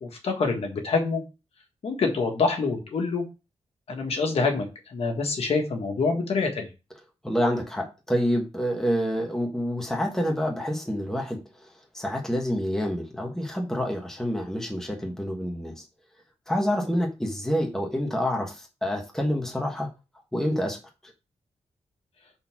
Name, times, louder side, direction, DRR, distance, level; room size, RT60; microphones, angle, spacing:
voice 1, 0.0-1.2 1.8-3.2 3.9-6.7, left 4 dB, 60° left, 1.6 m, -26 dB
voice 2, 7.2-11.4 11.9-15.8 16.5-19.9 20.3-20.8, equal, 5° left, 1.3 m, -27 dB
5.3 x 4.3 x 6.0 m
wide cardioid pair, 175°, 11 cm